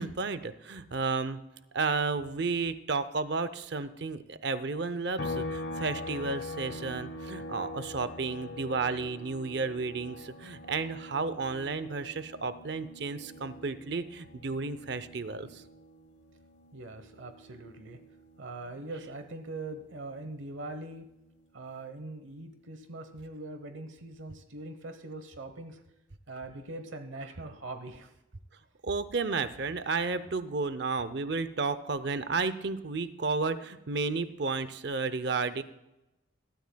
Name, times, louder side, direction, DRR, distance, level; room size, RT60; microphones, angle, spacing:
voice 1, 0.0-1.4 1.7-15.6 28.8-35.6, right 4 dB, 55° right, 13 dB, 0.6 m, -32 dB
sound 1, 5.2-18.7 19.1-21.3, left 2 dB, 60° left, 1.0 m, -43 dB
voice 2, 16.7-18.0 18.4-21.1 21.5-25.8 26.3-28.1, right 2 dB, 75° right, 8 dB, 1.0 m, -42 dB
20.0 x 13.0 x 2.3 m, 0.94 s
head